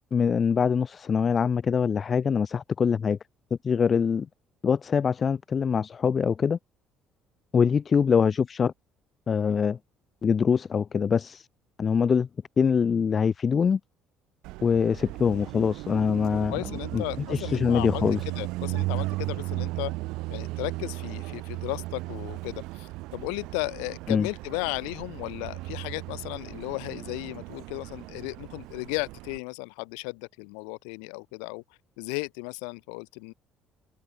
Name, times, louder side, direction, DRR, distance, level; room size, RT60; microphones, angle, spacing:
voice 1, 0.1-3.2 3.6-4.3 4.6-6.6 7.5-8.7 9.3-9.8 10.2-11.5 11.8-12.3 12.6-13.8 14.6-16.5 16.9-17.0 17.3-18.2 24.1-24.3, left 6 dB, 40° left, 0.3 m, -24 dB
Car passing by, 14.4-29.4, right 21 dB, 65° right, 0.8 m, -36 dB
voice 2, 16.5-19.9 20.3-31.6 32.0-33.3, left 40 dB or more, 70° left, 2.0 m, -35 dB
figure-of-eight pair, 50°, 0 cm